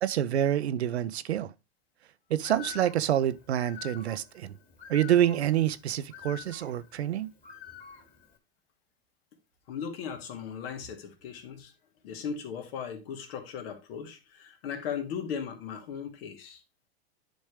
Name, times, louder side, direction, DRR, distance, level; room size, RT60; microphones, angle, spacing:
voice 1, 0.0-1.5 2.3-4.5 4.9-7.3, right 11 dB, 85° right, 0.7 m, -27 dB
Bird, 2.4-8.4, left 9 dB, 25° left, 2.6 m, -48 dB
voice 2, 9.7-11.7 12.0-16.6, left 7 dB, 65° left, 2.2 m, -37 dB
10.5 x 5.3 x 3.3 m
hypercardioid pair, 100°, 32 cm